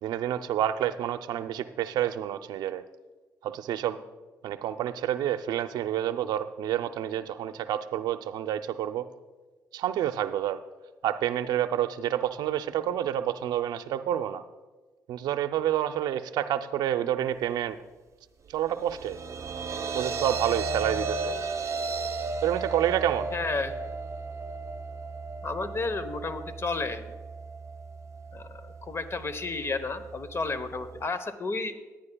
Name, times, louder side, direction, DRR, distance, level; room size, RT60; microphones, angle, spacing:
voice 1, 0.0-2.8 3.4-4.0 4.4-9.1 9.7-10.6 11.0-14.4 15.1-17.8 18.5-19.2 19.9-21.4 22.4-23.3, right 11 dB, 75° right, 11 dB, 0.5 m, -28 dB
sound 1, 18.7-31.0, right 4 dB, 45° right, 0.8 m, -35 dB
voice 2, 23.3-23.7 25.4-27.1 28.3-31.7, left 3 dB, 35° left, 12 dB, 1.0 m, -32 dB
18.0 x 10.5 x 2.3 m, 1.2 s
supercardioid pair, 60°, 7 cm